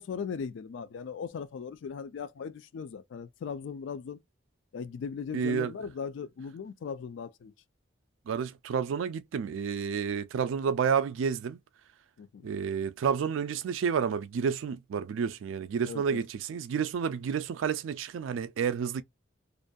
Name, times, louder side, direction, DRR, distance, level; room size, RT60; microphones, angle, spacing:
voice 1, 0.0-4.2 4.7-7.5 12.2-12.5 15.9-16.2, left 6 dB, 70° left, 0.3 m, -38 dB
voice 2, 5.3-5.7 8.3-11.6 12.4-19.0, right 6 dB, 85° right, 0.3 m, -30 dB
2.5 x 2.2 x 2.4 m
head